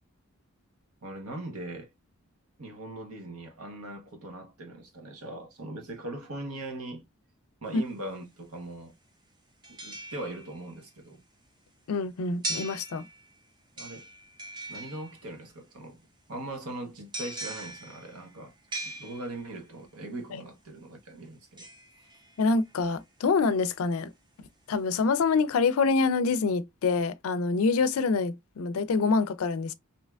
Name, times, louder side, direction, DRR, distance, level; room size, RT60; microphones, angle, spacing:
voice 1, 1.0-1.9 2.6-7.0 7.6-8.9 9.7-11.2 13.8-14.1 14.7-18.5 18.8-21.7 22.0-22.1, right 1 dB, 80° right, 1.0 m, -40 dB
sound 1, 7.7-7.8 9.6-10.8 12.4-13.4 13.8-15.5 17.1-19.7 21.6-22.7 23.2-23.3, right 2 dB, 20° right, 0.6 m, -40 dB
voice 2, 11.9-13.1 20.3-20.4 22.4-24.1 24.7-29.7, left 4 dB, 70° left, 0.4 m, -26 dB
3.3 x 2.7 x 2.3 m
head